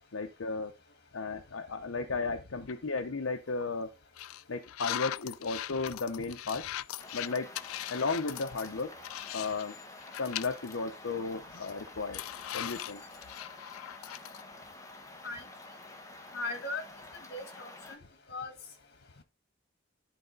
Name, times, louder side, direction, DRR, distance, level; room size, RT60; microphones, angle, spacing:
voice 1, 0.1-0.7 1.1-3.9 4.5-6.7 7.1-7.5 7.9-8.9 9.3-9.7 10.2-12.2 12.5-13.0, left 4 dB, 75° left, 5 dB, 0.8 m, -34 dB
sound 1, 2.7-3.0 3.5-3.6 4.2-9.7 10.0-10.8 11.1-11.2 11.5-14.4, left 13 dB, 90° left, 0.3 m, -40 dB
sound 2, 7.0-18.0, left 2 dB, 15° left, 1.1 m, -49 dB
voice 2, 16.3-16.8 17.3-18.0 18.3-18.5, left 2 dB, 55° left, 6 dB, 2.0 m, -38 dB
10.5 x 4.2 x 3.9 m, 0.27 s
head